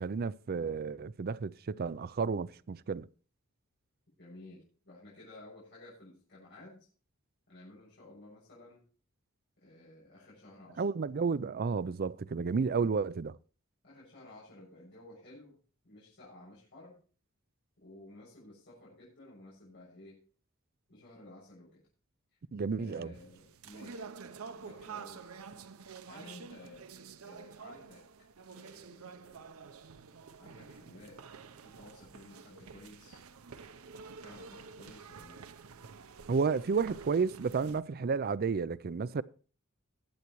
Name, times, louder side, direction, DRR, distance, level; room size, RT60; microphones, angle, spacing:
voice 1, 0.0-3.1 10.8-13.4 22.5-23.1 36.3-39.2, right 5 dB, 45° right, 0.4 m, -32 dB
voice 2, 4.2-6.9 7.5-8.8 9.6-10.8 13.8-15.6 15.8-17.0 17.8-20.2 20.9-21.8 22.8-24.1 24.6-25.5 26.1-26.8 27.2-28.0 28.5-29.5 30.4-31.2 31.6-33.2 34.2-35.4, left 1 dB, 55° left, 6.8 m, -54 dB
sound 1, 23.1-37.8, right 5 dB, 85° right, 0.7 m, -49 dB
20.5 x 8.1 x 3.1 m
head